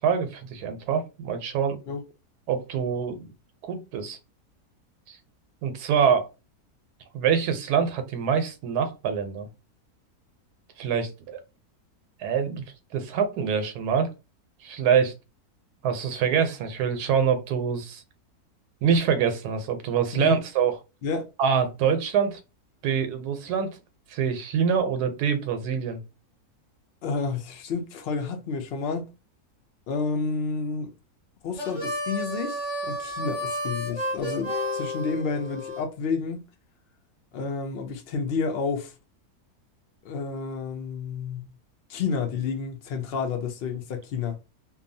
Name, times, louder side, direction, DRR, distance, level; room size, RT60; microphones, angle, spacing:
voice 1, 0.0-1.8 2.5-3.3 3.6-4.2 5.1-5.2 5.6-6.3 7.1-9.5 10.8-11.4 12.2-12.6 12.9-14.1 14.6-15.1 15.8-18.0 18.8-20.8 21.4-22.4 22.8-23.8 24.1-26.0, right 7 dB, 85° right, 1.2 m, -25 dB
voice 2, 27.0-29.1 29.9-30.9 31.4-36.4 37.3-38.9 40.0-41.5 41.9-44.4, left 4 dB, 90° left, 0.5 m, -30 dB
Harmonica, 31.5-35.8, equal, 25° left, 0.8 m, -31 dB
2.7 x 2.3 x 2.6 m
omnidirectional pair, 1.6 m